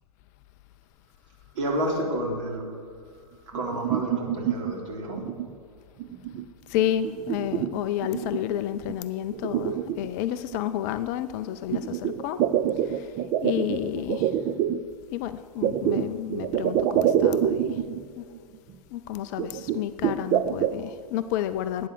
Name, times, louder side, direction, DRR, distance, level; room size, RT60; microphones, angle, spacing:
voice 1, 1.5-2.8 3.1-5.4, right 1 dB, 50° right, 0 dB, 3.7 m, -30 dB
sound 1, 3.5-4.7 5.2-5.5 6.0-6.4 6.8-8.4 8.8-8.9 9.3-10.6 11.7-14.8 15.6-18.0 18.3-18.4 18.7-18.8 19.4-20.8, right 10 dB, 25° right, 0.5 m, -26 dB
voice 2, 6.7-12.4 12.9-13.1 13.4-14.3 15.1-17.8 18.2-18.3 18.9-21.9, left 11 dB, 30° left, 11 dB, 0.5 m, -30 dB
12.0 x 9.4 x 8.3 m, 2.1 s
figure-of-eight pair, 110°, 20 cm